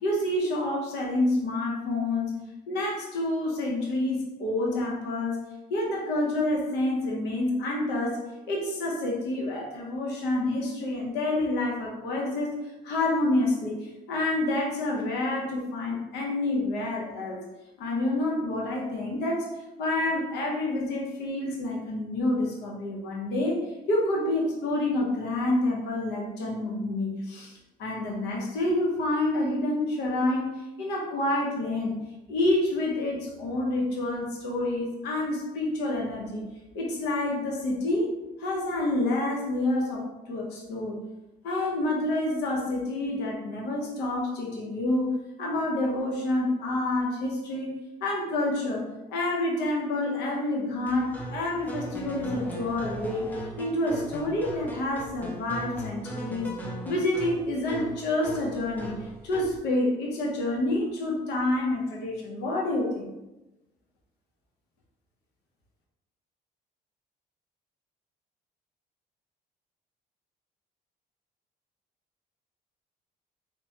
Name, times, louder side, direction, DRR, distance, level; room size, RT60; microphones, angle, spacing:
voice 1, 0.0-2.4 2.7-5.4 5.7-17.4 17.8-19.5 19.8-23.6 23.9-30.5 30.8-32.0 32.3-36.5 36.7-38.1 38.4-41.0 41.4-48.8 49.1-56.5 56.8-59.0 59.2-63.1, left 2 dB, 80° left, -1 dB, 0.8 m, -28 dB
sound 1, 50.9-59.6, right 1 dB, 10° left, 0.5 m, -39 dB
3.0 x 2.1 x 2.8 m, 1.0 s
cardioid pair, 110°, 17 cm